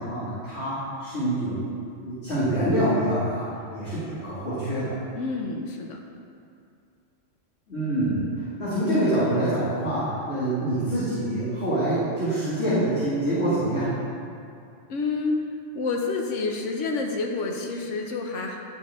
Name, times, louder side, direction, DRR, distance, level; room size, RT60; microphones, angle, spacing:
voice 1, 0.0-1.7 2.0-3.5 3.7-5.0 7.7-13.9, right 1 dB, 60° left, -13 dB, 2.3 m, -26 dB
voice 2, 5.1-6.0 14.9-15.4 15.7-18.6, left 3 dB, 75° left, 2 dB, 1.1 m, -28 dB
11.5 x 4.3 x 3.6 m, 2.4 s
omnidirectional pair, 1.3 m